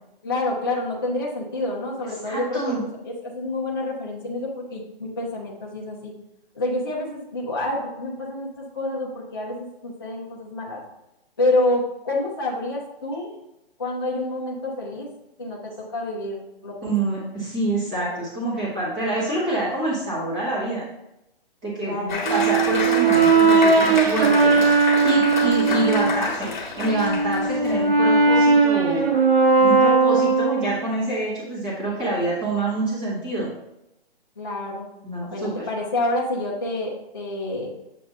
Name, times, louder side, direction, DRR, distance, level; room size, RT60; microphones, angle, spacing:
voice 1, 0.2-6.1 6.5-10.8 11.4-13.3 13.8-15.1 15.4-16.9 21.8-22.3 34.4-34.9 35.3-37.7, left 2 dB, 25° left, -5 dB, 0.6 m, -28 dB
voice 2, 2.2-2.8 16.8-20.8 21.6-24.7 25.0-29.1 29.6-33.5 35.0-35.6, right 2 dB, 10° right, -8 dB, 0.9 m, -26 dB
Applause, 22.1-27.8, left 4 dB, 50° left, 1.2 m, -29 dB
Brass instrument, 22.2-26.2 26.8-30.8, right 4 dB, 70° right, 1.1 m, -18 dB
7.4 x 2.5 x 5.4 m, 0.86 s
hypercardioid pair, 180°, 31 cm